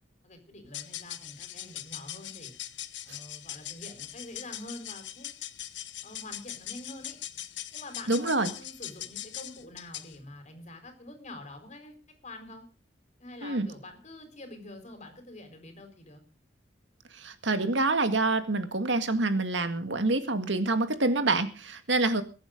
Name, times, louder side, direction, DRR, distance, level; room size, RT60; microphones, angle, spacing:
voice 1, 0.2-2.5 3.0-5.3 6.0-7.2 7.7-11.9 12.2-12.6 13.2-16.2, left 1 dB, 40° left, 6 dB, 4.5 m, -46 dB
sound 1, 0.7-10.2, left 13 dB, 75° left, 1.0 m, -41 dB
voice 2, 8.1-8.5 13.4-13.7 17.1-22.2, right 2 dB, 85° right, 9 dB, 1.9 m, -27 dB
22.5 x 8.8 x 5.1 m, 0.35 s
head